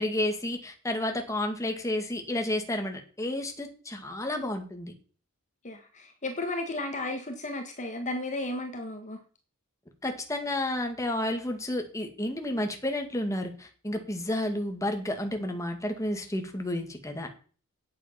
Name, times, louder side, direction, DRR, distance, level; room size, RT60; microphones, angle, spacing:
voice 1, 0.0-4.9 10.0-17.3, left 1 dB, 15° left, 4 dB, 1.9 m, -31 dB
voice 2, 5.6-9.2, left 2 dB, 35° left, 4 dB, 1.6 m, -34 dB
9.7 x 8.5 x 5.8 m, 0.39 s
head